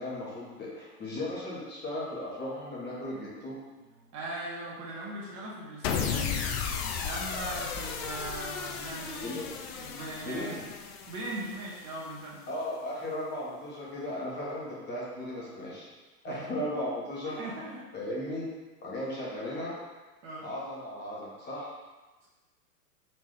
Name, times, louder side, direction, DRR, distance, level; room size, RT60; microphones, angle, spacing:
voice 1, 0.0-3.6 9.2-9.6 10.2-10.7 12.5-15.8 16.2-17.4 17.9-18.4 18.8-19.8 20.4-21.7, left 1 dB, 20° left, -6 dB, 1.1 m, -36 dB
voice 2, 4.0-6.4 7.0-9.4 9.7-10.7 11.1-12.4 16.2-16.5 17.2-17.9 20.2-20.5 22.2-22.3, right 1 dB, 35° right, -5 dB, 1.1 m, -39 dB
sound 1, 5.8-12.2, left 6 dB, 45° left, 0.5 m, -35 dB
4.3 x 3.0 x 3.3 m, 1.2 s
hypercardioid pair, 110°, 47 cm